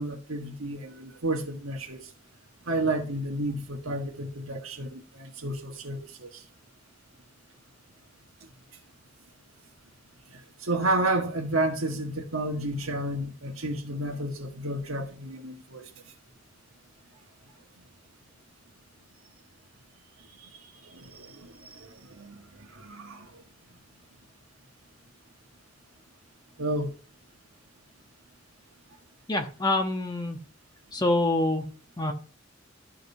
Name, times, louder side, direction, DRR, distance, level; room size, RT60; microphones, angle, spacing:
voice 1, 0.0-2.1 2.7-6.4 10.6-15.8 20.4-23.4 26.6-26.9, right 2 dB, 85° right, 1.4 m, -31 dB
voice 2, 29.3-30.4 30.9-31.6 32.0-32.1, left 2 dB, 20° left, 1.1 m, -26 dB
12.5 x 5.1 x 2.7 m
head